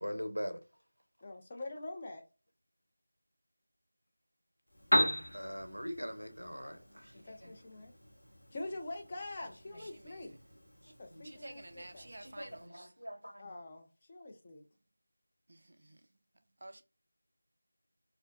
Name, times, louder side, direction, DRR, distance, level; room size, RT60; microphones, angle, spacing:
voice 1, 0.0-0.6 5.3-7.5 11.1-11.3 12.2-13.4, equal, 90° right, 0.6 m, -42 dB
voice 2, 1.2-2.2 6.6-6.8 7.1-7.9 8.5-10.4 10.8-12.1 13.4-14.6, left 2 dB, 20° left, 0.4 m, -45 dB
Piano, 4.7-12.7, equal, 60° left, 0.8 m, -38 dB
voice 3, 9.8-10.3 11.2-12.9 15.5-16.0 16.6-16.8, right 1 dB, 45° right, 0.3 m, -51 dB
2.6 x 2.1 x 2.3 m
figure-of-eight pair, 170°, 0 cm